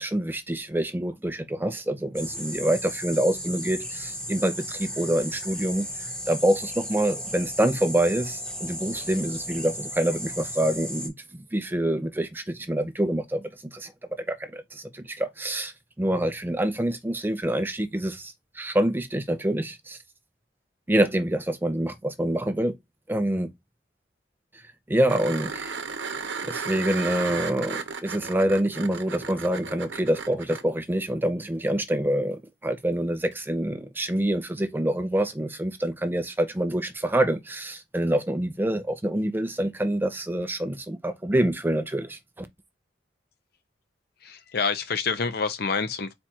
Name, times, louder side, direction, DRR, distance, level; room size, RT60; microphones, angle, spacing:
voice 1, 0.0-5.9 6.3-13.4 13.7-13.9 14.3-15.7 16.0-20.0 20.9-22.7 23.1-23.5 24.9-25.7 26.5-42.5, right 1 dB, 10° right, 0.5 m, -26 dB
sound 1, 2.1-11.1, equal, 5° left, 1.1 m, -35 dB
sound 2, 25.1-30.6 33.3-33.4, right 5 dB, 80° right, 0.8 m, -34 dB
voice 2, 44.2-46.1, left 5 dB, 55° left, 0.7 m, -27 dB
4.3 x 2.4 x 4.3 m
head